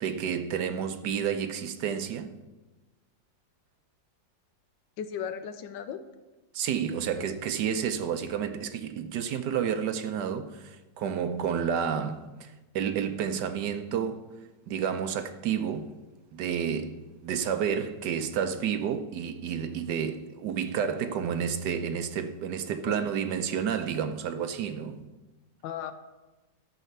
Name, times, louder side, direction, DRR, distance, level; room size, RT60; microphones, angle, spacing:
voice 1, 0.0-2.3 6.5-14.2 14.7-15.9 16.3-25.0, right 8 dB, 70° right, 1.2 m, -30 dB
voice 2, 5.0-6.0 22.9-23.0 25.6-25.9, left 8 dB, 80° left, 1.5 m, -35 dB
13.0 x 4.9 x 6.6 m
omnidirectional pair, 2.0 m